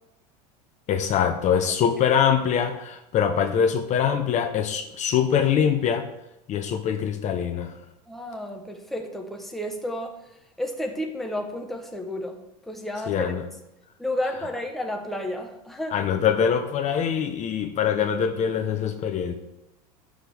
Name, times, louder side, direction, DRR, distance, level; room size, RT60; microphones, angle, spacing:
voice 1, 0.9-6.0 6.5-7.7 13.1-13.4 15.9-19.3, left 8 dB, 35° left, 6 dB, 0.7 m, -23 dB
voice 2, 8.1-10.2 10.6-12.4 12.7-13.3 14.0-16.0, left 1 dB, ahead, 2 dB, 1.1 m, -31 dB
9.8 x 6.3 x 3.4 m, 0.89 s
supercardioid pair, 125°, 19 cm